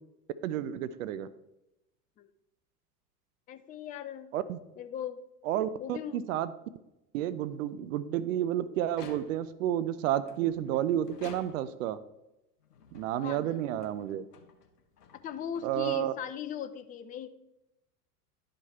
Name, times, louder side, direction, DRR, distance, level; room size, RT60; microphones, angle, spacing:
voice 1, 0.4-1.3 4.3-4.6 5.5-6.5 7.1-12.0 12.9-14.2 15.6-16.1, right 11 dB, 55° right, 15 dB, 0.6 m, -31 dB
voice 2, 3.5-4.3 4.8-5.2 5.8-6.3 13.2-13.6 15.2-17.3, left 9 dB, 20° left, 10 dB, 0.4 m, -39 dB
sound 1, 8.8-9.7 10.2-11.9 12.6-16.2, left 5 dB, 75° left, 1.2 m, -53 dB
11.0 x 5.1 x 4.3 m, 0.90 s
figure-of-eight pair, 85°, 47 cm